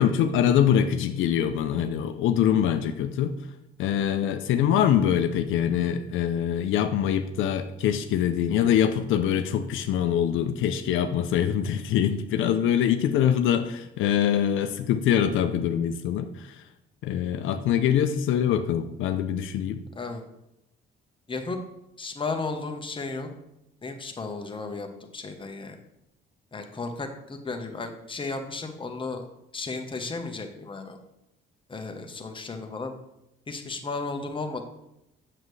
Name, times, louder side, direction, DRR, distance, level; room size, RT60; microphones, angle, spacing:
voice 1, 0.0-3.3 3.8-16.6 17.0-19.8, left 9 dB, 85° left, 8 dB, 0.5 m, -24 dB
voice 2, 21.3-21.6 22.0-23.3 23.8-24.9 25.1-25.8 26.5-29.2 29.5-31.0 31.7-32.9 33.5-34.6, left 3 dB, 25° left, 4 dB, 1.0 m, -34 dB
7.3 x 6.7 x 3.2 m, 0.87 s
cardioid pair, 90°, 20 cm